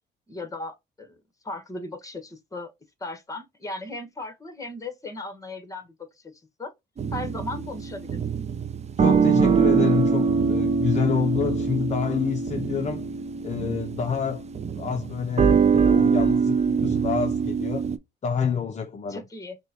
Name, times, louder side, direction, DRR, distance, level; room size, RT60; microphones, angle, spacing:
voice 1, 0.3-1.2 1.4-2.7 3.0-5.9 6.2-6.7 7.1-8.2 19.1-19.6, left 2 dB, 15° left, 1.3 m, -36 dB
sound 1, 7.0-18.0, right 6 dB, 35° right, 0.5 m, -23 dB
voice 2, 9.0-13.1 13.4-14.4 14.8-17.9 18.2-19.2, left 6 dB, 35° left, 0.6 m, -28 dB
6.3 x 2.3 x 2.8 m
cardioid pair, 90°, 20 cm